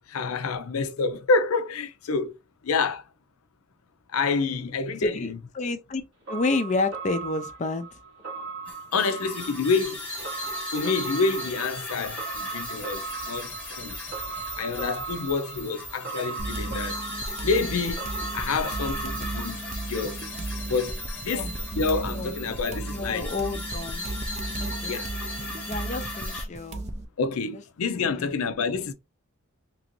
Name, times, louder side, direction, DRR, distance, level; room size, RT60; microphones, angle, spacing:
voice 1, 0.1-2.3 2.7-3.0 4.1-5.4 8.9-10.0 10.7-13.0 13.3-13.5 13.8-13.9 14.6-17.0 17.4-18.0 18.3-19.6 19.9-20.1 20.7-20.9 21.2-21.5 21.8-23.3 24.9-25.1 27.2-28.9, left 4 dB, 85° left, 0.5 m, -27 dB
voice 2, 5.0-6.0 6.3-7.9 21.3-21.5 22.1-22.3 22.8-24.1 24.6-25.0 25.5-26.8 28.0-28.3, left 3 dB, 35° left, 0.4 m, -30 dB
sound 1, 6.3-19.5, right 4 dB, 85° right, 1.3 m, -38 dB
sound 2, 8.7-26.4, left 1 dB, 5° left, 0.9 m, -37 dB
sound 3, 16.4-27.0, right 2 dB, 30° right, 0.4 m, -35 dB
3.0 x 2.5 x 2.9 m
head